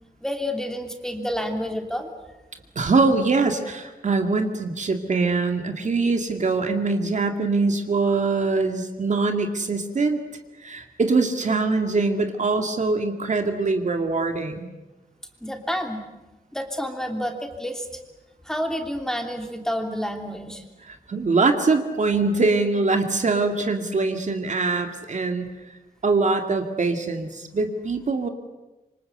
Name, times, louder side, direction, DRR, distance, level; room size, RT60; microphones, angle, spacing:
voice 1, 0.2-2.1 15.4-16.0 16.5-17.9 18.4-20.6, equal, 5° left, 4 dB, 3.0 m, -29 dB
voice 2, 2.8-10.2 10.6-14.7 20.8-25.5 26.0-28.3, right 3 dB, 50° right, 5 dB, 2.2 m, -23 dB
27.0 x 25.5 x 8.0 m, 1.1 s
wide cardioid pair, 135°, 15 cm